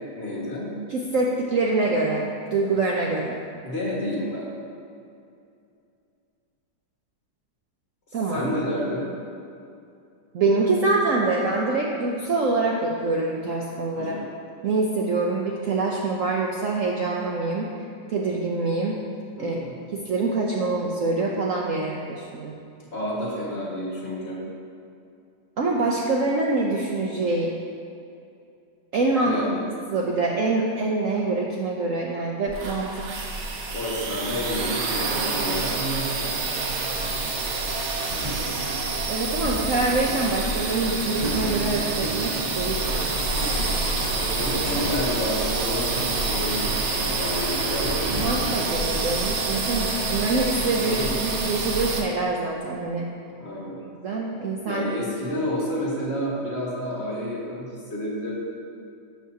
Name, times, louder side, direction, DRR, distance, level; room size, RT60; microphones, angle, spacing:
voice 1, 0.1-0.7 3.6-4.5 8.3-9.0 14.0-14.2 19.4-19.8 22.9-24.4 29.2-29.6 33.7-36.3 44.1-45.9 46.3-48.2 50.8-51.1 53.4-53.8 54.7-58.3, left 1 dB, 35° left, -5 dB, 1.9 m, -30 dB
voice 2, 0.9-3.4 8.1-8.5 10.3-14.2 14.6-17.7 18.1-19.0 19.4-19.5 19.9-22.6 25.6-27.6 28.9-29.4 29.9-33.0 39.1-43.1 48.1-53.1 54.0-54.9, right 3 dB, 60° right, -2 dB, 0.9 m, -25 dB
sound 1, 32.5-52.0, right 3 dB, 85° right, 1.6 m, -27 dB
sound 2, 36.9-50.5, equal, 25° right, 0.9 m, -35 dB
12.0 x 7.3 x 2.8 m, 2.6 s
omnidirectional pair, 1.9 m